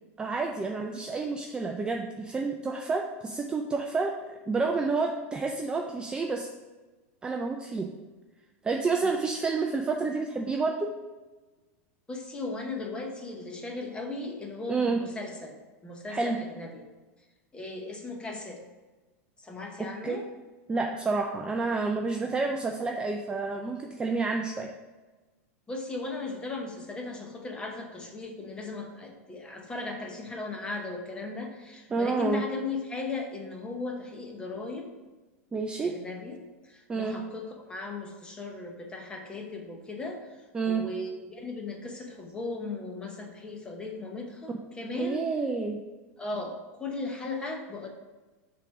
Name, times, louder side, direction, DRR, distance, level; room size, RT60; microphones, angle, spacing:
voice 1, 0.2-4.1 4.5-6.5 7.2-7.9 8.6-10.9 14.7-15.0 16.1-16.4 19.8-20.2 20.7-24.7 31.9-32.4 35.5-35.9 36.9-37.2 40.5-40.8 45.0-45.8, right 4 dB, 10° right, 3 dB, 0.3 m, -29 dB
voice 2, 12.1-15.6 15.8-16.8 17.5-18.6 19.4-20.2 25.7-34.9 35.8-40.2 40.6-45.2 46.2-47.9, left 3 dB, 10° left, 2 dB, 0.9 m, -37 dB
5.8 x 3.6 x 5.9 m, 1.2 s
supercardioid pair, 145°, 8 cm